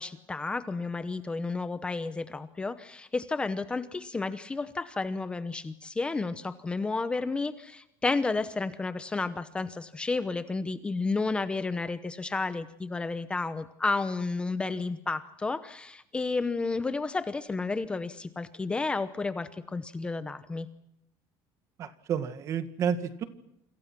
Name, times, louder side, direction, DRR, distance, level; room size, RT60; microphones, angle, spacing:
voice 1, 0.0-20.7, left 3 dB, 10° left, 12 dB, 0.9 m, -31 dB
voice 2, 21.8-23.2, right 7 dB, 35° right, 12 dB, 1.9 m, -30 dB
28.5 x 26.0 x 6.1 m, 0.81 s
cardioid pair, 175°, 9 cm